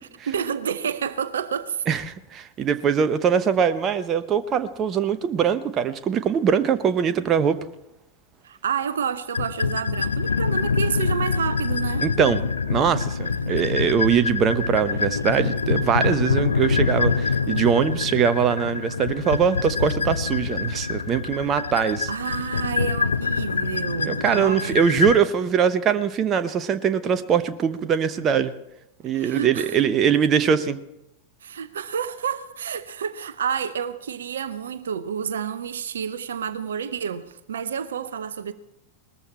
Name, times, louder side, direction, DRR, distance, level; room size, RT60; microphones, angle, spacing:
voice 1, 0.0-1.8 8.4-12.0 22.1-25.1 29.1-29.8 31.4-38.5, right 7 dB, 65° right, 0.8 m, -29 dB
voice 2, 1.9-7.6 12.0-22.1 24.0-28.5 29.0-30.8, right 7 dB, 30° right, 0.9 m, -22 dB
sound 1, 9.3-25.2, left 5 dB, 75° left, 0.6 m, -25 dB
20.0 x 14.0 x 4.3 m
figure-of-eight pair, 90°, 0 cm